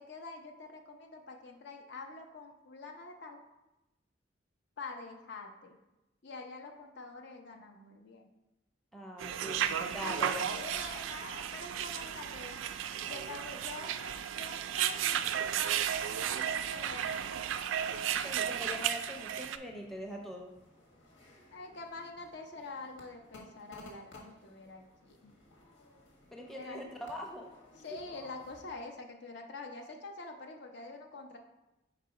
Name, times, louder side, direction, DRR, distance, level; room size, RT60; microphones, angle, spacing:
voice 1, 0.0-3.4 4.8-5.8 6.2-8.3 10.5-12.7 13.1-17.3 21.5-25.3 26.5-26.8 27.8-31.4, left 3 dB, 60° left, 2 dB, 0.7 m, -46 dB
voice 2, 8.9-10.5 18.1-20.5 26.3-28.0, left 1 dB, ahead, 0 dB, 0.6 m, -42 dB
sound 1, 9.2-19.6, right 9 dB, 80° right, 0.3 m, -34 dB
sound 2, 14.8-28.8, left 1 dB, 85° left, 1.4 m, -58 dB
4.9 x 4.1 x 4.7 m, 0.96 s
head